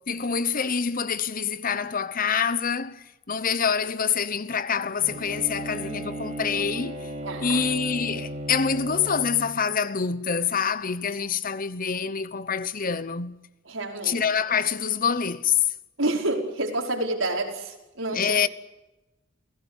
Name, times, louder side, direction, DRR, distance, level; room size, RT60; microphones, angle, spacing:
voice 1, 0.0-7.1 7.4-13.4 14.0-15.7 18.1-18.5, left 6 dB, 45° left, 1.0 m, -26 dB
Bowed string instrument, 5.0-9.7, right 1 dB, 40° right, 6.3 m, -35 dB
voice 2, 7.2-7.6 13.7-14.2 16.0-18.4, right 2 dB, 85° right, 5.1 m, -28 dB
28.5 x 17.0 x 8.2 m
head